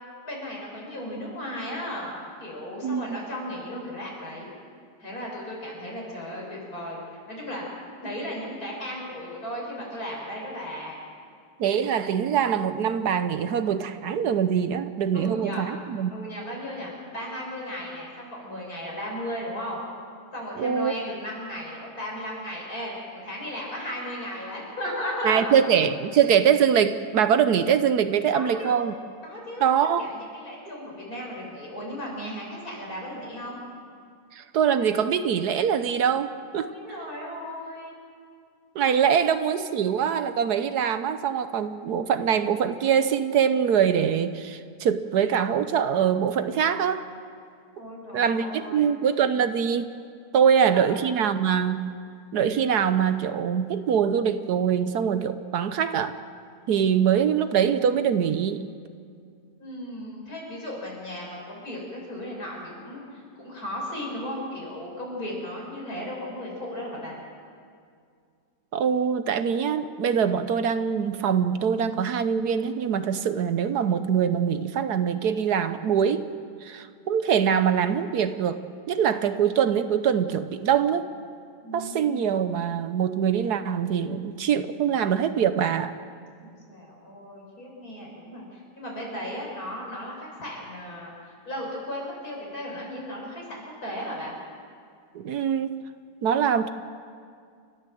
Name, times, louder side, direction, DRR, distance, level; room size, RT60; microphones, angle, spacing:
voice 1, 0.2-4.5 5.0-7.6 8.0-11.0 15.1-15.7 16.1-19.8 20.3-25.5 28.3-28.9 29.2-29.7 30.0-33.6 36.6-37.9 39.0-39.2 47.7-49.0 50.5-51.0 59.6-67.2 81.6-82.3 86.4-94.3, equal, 55° left, -3 dB, 6.6 m, -36 dB
voice 2, 2.8-3.2 11.6-16.1 20.6-20.9 25.2-28.9 29.6-30.1 34.3-36.7 38.7-47.1 48.1-49.9 50.3-51.9 52.3-56.2 56.7-58.7 68.7-76.3 76.6-78.6 78.9-81.1 81.7-86.0 95.1-95.8 96.2-96.7, right 8 dB, 70° right, 11 dB, 1.3 m, -23 dB
29.5 x 13.5 x 7.7 m, 2.2 s
omnidirectional pair, 1.8 m